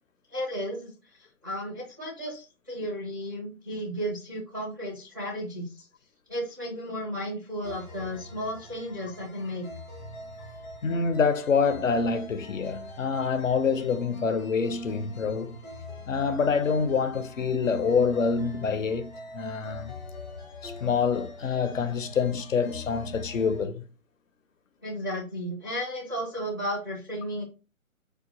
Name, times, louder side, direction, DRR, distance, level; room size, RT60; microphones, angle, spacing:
voice 1, 0.3-5.9 6.3-9.7 24.8-27.5, equal, 15° right, 0.5 m, -34 dB
sound 1, 7.6-23.6, left 1 dB, 15° left, 0.8 m, -43 dB
voice 2, 10.8-15.6 16.1-19.9 20.6-23.8, left 5 dB, 65° left, 0.7 m, -26 dB
4.6 x 2.4 x 2.5 m
figure-of-eight pair, 140°, 43 cm